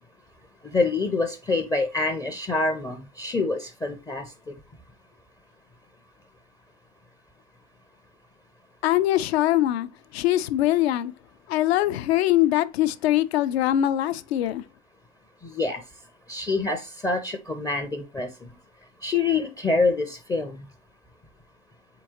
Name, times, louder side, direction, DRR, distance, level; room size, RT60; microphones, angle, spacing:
voice 1, 0.7-4.3 15.4-15.8 16.3-18.3 19.0-20.6, left 3 dB, 10° left, 0.4 m, -26 dB
voice 2, 8.8-11.1 11.5-14.6, left 13 dB, 60° left, 0.5 m, -22 dB
4.3 x 3.7 x 2.8 m
figure-of-eight pair, 80°, 35 cm